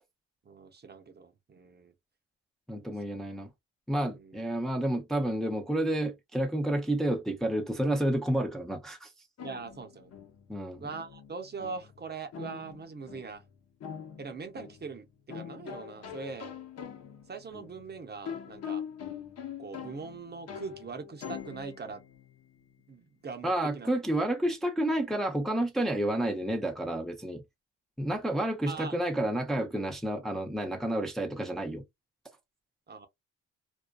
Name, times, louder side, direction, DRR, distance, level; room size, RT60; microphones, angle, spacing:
voice 1, 0.4-1.9 4.1-4.4 9.4-10.1 10.8-13.4 14.2-16.5 17.3-18.8 19.6-22.0 22.9-23.9 28.7-29.0 32.9-33.1, right 4 dB, 35° right, 0.7 m, -41 dB
voice 2, 2.7-3.5 3.9-9.1 10.5-10.8 23.4-27.4 28.0-31.8, right 1 dB, ahead, 0.5 m, -30 dB
sound 1, 9.4-23.0, left 8 dB, 55° left, 0.9 m, -44 dB
2.5 x 2.2 x 2.2 m
cardioid pair, 90°, 30 cm